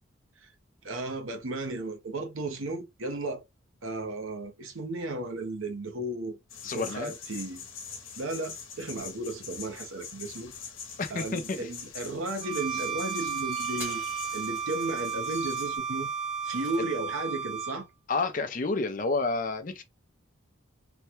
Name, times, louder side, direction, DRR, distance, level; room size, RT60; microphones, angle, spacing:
voice 1, 0.8-3.4 3.8-6.4 6.7-7.7 8.1-10.5 11.1-14.0 14.3-16.1 16.4-17.9, right 2 dB, 75° right, 0.9 m, -34 dB
sound 1, 6.5-15.8, left 6 dB, 70° left, 0.9 m, -43 dB
voice 2, 6.6-7.1 11.0-11.7 16.8-16.9 18.1-19.8, left 3 dB, 40° left, 0.5 m, -30 dB
Bowed string instrument, 12.4-17.8, right 7 dB, 30° right, 0.5 m, -33 dB
sound 2, 13.7-17.0, left 1 dB, 10° right, 0.9 m, -49 dB
3.3 x 2.2 x 2.9 m
head